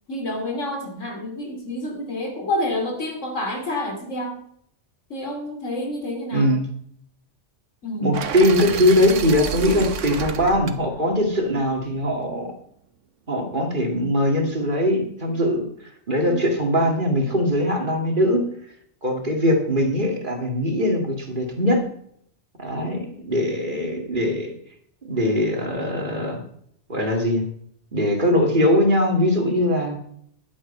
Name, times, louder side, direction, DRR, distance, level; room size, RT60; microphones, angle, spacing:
voice 1, 0.1-4.4 5.1-6.5 7.8-8.2 16.3-16.5, left 1 dB, 90° left, 3 dB, 3.1 m, -28 dB
voice 2, 6.3-6.6 8.0-12.5 13.3-18.5 19.0-21.8 22.6-24.5 25.0-26.4 26.9-27.5 27.9-30.0, left 1 dB, 45° right, 2 dB, 2.4 m, -21 dB
sound 1, 8.1-12.2, right 7 dB, 85° right, 1.2 m, -32 dB
11.0 x 8.5 x 5.5 m, 0.66 s
omnidirectional pair, 1.2 m